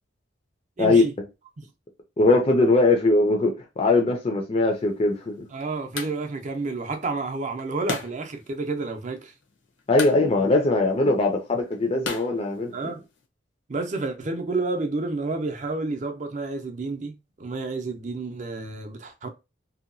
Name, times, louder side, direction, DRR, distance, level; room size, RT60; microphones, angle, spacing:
voice 1, 0.8-1.1 5.5-9.3 12.7-13.0 13.7-19.3, right 3 dB, 40° right, 0.5 m, -30 dB
voice 2, 2.2-5.5 9.9-12.7, left 2 dB, 35° left, 0.4 m, -21 dB
sound 1, 4.7-13.3, left 4 dB, 75° left, 0.7 m, -39 dB
2.8 x 2.2 x 2.5 m
head